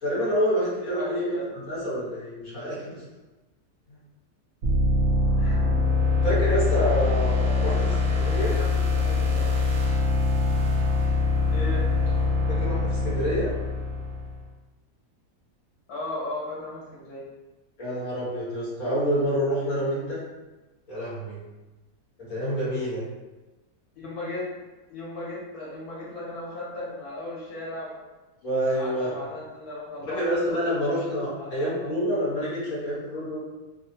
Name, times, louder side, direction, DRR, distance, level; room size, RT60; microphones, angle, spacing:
voice 1, 0.0-1.4 1.6-3.0 3.9-4.0 6.2-8.5 12.5-13.5 17.8-20.2 20.9-21.4 22.2-23.0 28.4-29.1 30.1-33.4, equal, 60° left, -8 dB, 1.8 m, -27 dB
voice 2, 0.8-1.5 5.4-5.7 7.6-9.5 11.5-12.1 15.9-17.2 23.9-24.4 24.9-28.0 28.7-30.3 31.4-31.9, left 1 dB, 75° left, -6 dB, 1.7 m, -36 dB
sound 1, 4.6-14.4, left 3 dB, 65° right, 0.9 m, -23 dB
3.9 x 2.0 x 2.7 m, 1.1 s
omnidirectional pair, 1.7 m